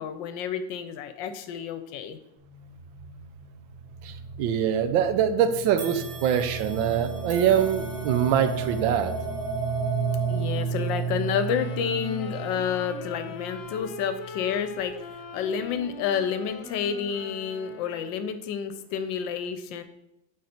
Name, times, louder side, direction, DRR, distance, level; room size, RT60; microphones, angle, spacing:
voice 1, 0.0-2.2 10.3-14.9 15.3-19.8, left 7 dB, 75° left, 10 dB, 1.2 m, -30 dB
sound 1, 2.4-14.6, right 5 dB, 20° right, 1.2 m, -33 dB
voice 2, 4.0-9.1, right 9 dB, 80° right, 10 dB, 1.3 m, -24 dB
sound 2, 5.8-15.1 15.6-15.8 16.7-16.8, right 4 dB, 45° right, 1.2 m, -47 dB
sound 3, 11.3-18.4, left 4 dB, 60° left, 0.9 m, -41 dB
8.5 x 4.0 x 4.3 m, 0.87 s
omnidirectional pair, 2.1 m